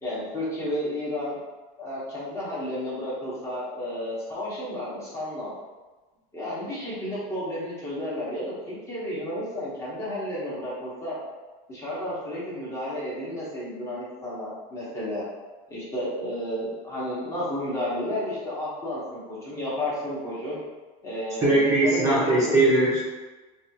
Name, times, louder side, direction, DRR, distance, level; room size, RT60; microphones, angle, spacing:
voice 1, 0.0-1.4 1.8-5.5 6.3-11.2 11.7-15.2 15.7-20.6 21.0-22.7, left 1 dB, 15° left, -8 dB, 0.7 m, -32 dB
voice 2, 21.4-23.0, right 2 dB, 20° right, -8 dB, 0.5 m, -20 dB
3.2 x 2.3 x 2.7 m, 1.2 s
cardioid pair, 180°, 17 cm